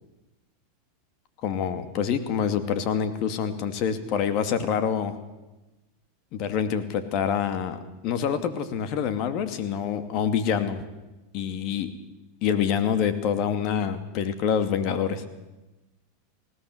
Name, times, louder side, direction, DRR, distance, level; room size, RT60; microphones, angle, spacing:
voice 1, 1.4-5.2 6.3-10.8 11.3-11.9 12.4-15.2, left 7 dB, 50° left, 10 dB, 2.5 m, -26 dB
20.0 x 17.0 x 8.0 m, 1.1 s
hypercardioid pair, 110°, 0 cm